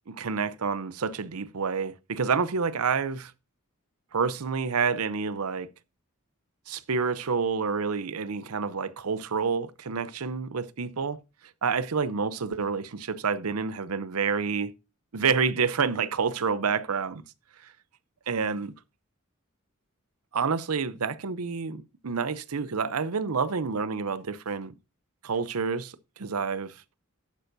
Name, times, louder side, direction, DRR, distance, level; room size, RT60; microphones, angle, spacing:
voice 1, 0.1-3.3 4.1-5.7 6.7-11.2 11.6-14.7 15.1-17.2 18.3-18.7 20.3-24.7 25.2-26.7, right 5 dB, 90° right, 0.7 m, -28 dB
11.5 x 9.0 x 2.7 m
head